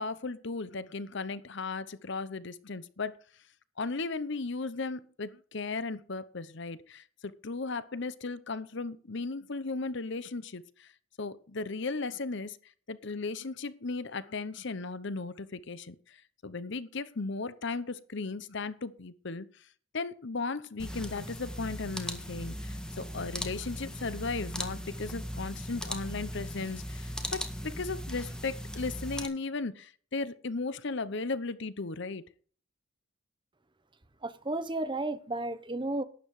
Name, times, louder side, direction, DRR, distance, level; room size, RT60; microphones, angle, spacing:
voice 1, 0.0-3.2 3.8-10.9 11.2-12.6 12.9-19.5 19.9-32.2, left 3 dB, 60° left, 0.9 m, -36 dB
sound 1, 20.8-29.3, equal, 5° left, 1.8 m, -38 dB
voice 2, 34.2-36.0, right 2 dB, 25° right, 1.0 m, -33 dB
12.0 x 9.9 x 4.9 m
head